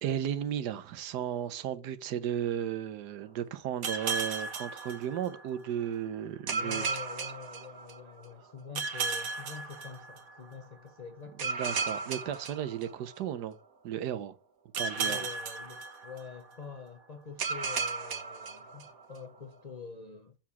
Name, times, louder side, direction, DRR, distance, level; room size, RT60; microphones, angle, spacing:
voice 1, 0.0-6.9 11.4-13.6 13.8-14.4 14.8-15.3, right 10 dB, 80° right, 1.3 m, -34 dB
sound 1, 3.8-5.6 6.5-8.2 8.8-10.5 11.4-13.4 14.7-16.5 17.4-19.2, right 4 dB, 60° right, 1.5 m, -35 dB
voice 2, 6.5-11.8 14.9-20.4, left 5 dB, 75° left, 0.3 m, -46 dB
7.3 x 4.7 x 6.9 m
omnidirectional pair, 1.8 m